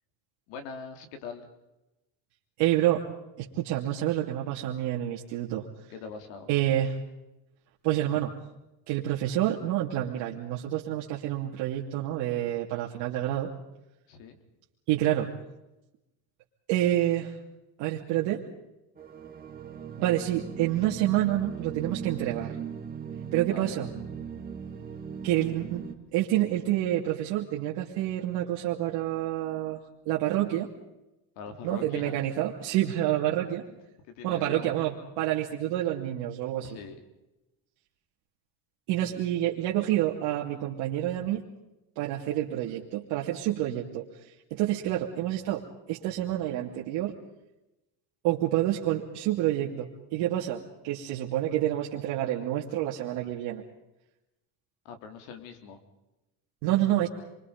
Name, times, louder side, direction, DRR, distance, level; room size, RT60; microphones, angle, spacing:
voice 1, 0.5-1.5 5.9-6.5 14.1-14.4 23.4-23.8 31.4-32.2 33.7-33.8 34.2-34.7 36.6-37.0 54.8-55.8, left 5 dB, 80° left, 6 dB, 3.9 m, -42 dB
voice 2, 2.6-3.0 3.4-5.7 6.5-6.9 7.8-8.3 8.9-13.5 14.9-15.3 16.7-17.3 17.8-18.4 20.0-22.6 23.3-23.9 25.2-25.8 26.1-29.8 30.1-30.7 31.6-33.6 34.2-36.8 38.9-41.4 42.0-44.1 44.5-45.6 45.9-47.1 48.2-53.6 56.6-57.1, right 13 dB, 70° right, -3 dB, 2.8 m, -28 dB
sound 1, 19.0-25.9, right 7 dB, 20° right, 2.2 m, -39 dB
28.5 x 23.5 x 5.3 m, 0.95 s
cardioid pair, 170°, 42 cm